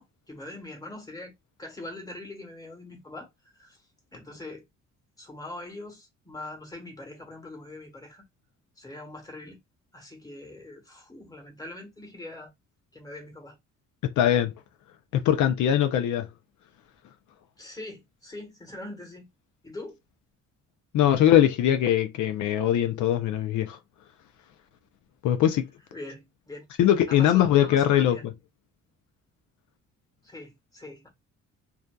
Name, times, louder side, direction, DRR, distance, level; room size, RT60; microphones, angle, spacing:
voice 1, 0.0-1.3 1.6-3.3 3.6-3.8 4.1-4.6 5.2-8.2 8.8-9.6 9.9-12.5 12.9-13.6 17.6-19.3 19.6-20.0 25.9-26.7 27.1-28.2 30.2-31.1, left 2 dB, 10° left, 1.3 m, -42 dB
voice 2, 14.0-14.5 15.1-16.3 20.9-23.8 25.2-25.6 26.8-28.2, left 11 dB, 75° left, 0.5 m, -21 dB
2.6 x 2.3 x 2.3 m
cardioid pair, 90°, 30 cm